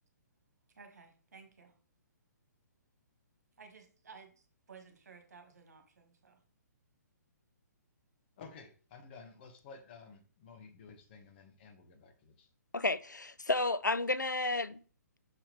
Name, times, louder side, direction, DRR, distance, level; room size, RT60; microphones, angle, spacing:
voice 1, 0.8-1.8 3.6-6.4, right 5 dB, 60° right, 1.8 m, -56 dB
voice 2, 8.4-12.5, left 5 dB, 35° left, 1.3 m, -53 dB
voice 3, 12.7-14.8, left 2 dB, 85° left, 0.5 m, -31 dB
6.3 x 5.7 x 3.3 m
figure-of-eight pair, 125°, 10 cm